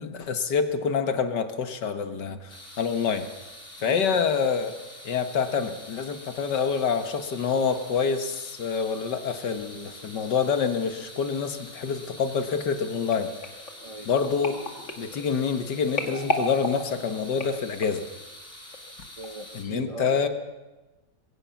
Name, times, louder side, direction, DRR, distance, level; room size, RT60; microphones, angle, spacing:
voice 1, 0.0-3.3 3.8-4.8 5.0-13.3 14.1-14.6 15.0-18.1 19.5-20.3, left 6 dB, 75° left, 8 dB, 2.2 m, -27 dB
sound 1, 2.5-19.6, left 1 dB, 15° left, 4.2 m, -46 dB
voice 2, 3.8-4.2 13.8-14.1 19.2-20.3, right 2 dB, 30° right, 7 dB, 0.6 m, -39 dB
sound 2, 13.1-18.1 18.7-19.0 19.2-19.3, left 1 dB, 45° left, 2.4 m, -34 dB
22.0 x 17.0 x 7.2 m, 1.1 s
omnidirectional pair, 1.9 m